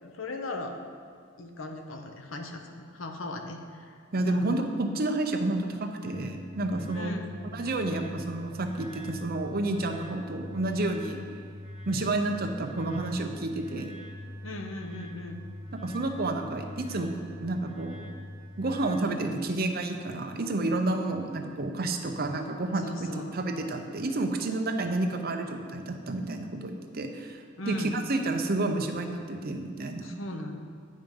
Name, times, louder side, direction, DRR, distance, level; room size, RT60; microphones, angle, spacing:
voice 1, 0.0-0.8 1.4-4.7 6.9-7.4 14.4-15.4 22.8-23.3 27.6-28.0 30.0-30.6, left 2 dB, 85° left, 4 dB, 0.8 m, -38 dB
voice 2, 4.1-7.2 7.5-11.2 11.9-14.0 15.7-18.1 18.6-30.1, right 2 dB, 50° right, 4 dB, 0.7 m, -30 dB
sound 1, 6.0-19.0, left 1 dB, ahead, 2.2 m, -43 dB
9.1 x 5.2 x 5.4 m, 2.1 s
head